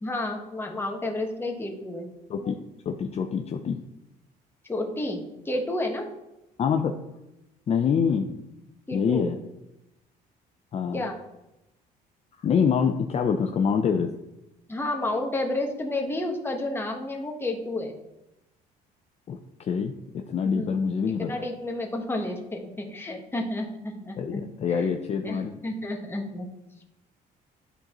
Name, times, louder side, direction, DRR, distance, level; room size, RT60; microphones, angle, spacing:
voice 1, 0.0-2.1 4.7-6.1 8.9-9.3 10.9-11.2 14.7-18.0 20.5-20.7 21.2-24.4 24.7-24.9 25.2-26.5, left 1 dB, 15° left, 2 dB, 1.1 m, -31 dB
voice 2, 2.3-3.8 6.6-7.0 7.7-8.4 8.9-9.4 10.7-11.1 12.4-14.1 19.3-21.3 24.2-25.6, left 6 dB, 40° left, 4 dB, 0.5 m, -26 dB
11.0 x 4.0 x 3.0 m, 0.92 s
cardioid pair, 110°, 17 cm